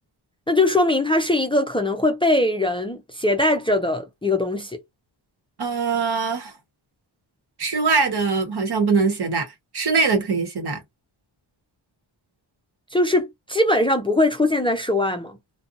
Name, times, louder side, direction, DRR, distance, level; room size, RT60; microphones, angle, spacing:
voice 1, 0.5-4.8 12.9-15.4, left 2 dB, 10° left, 0.4 m, -21 dB
voice 2, 5.6-6.5 7.6-10.8, right 4 dB, 55° right, 1.1 m, -22 dB
2.5 x 2.2 x 2.6 m
wide cardioid pair, 100°, 47 cm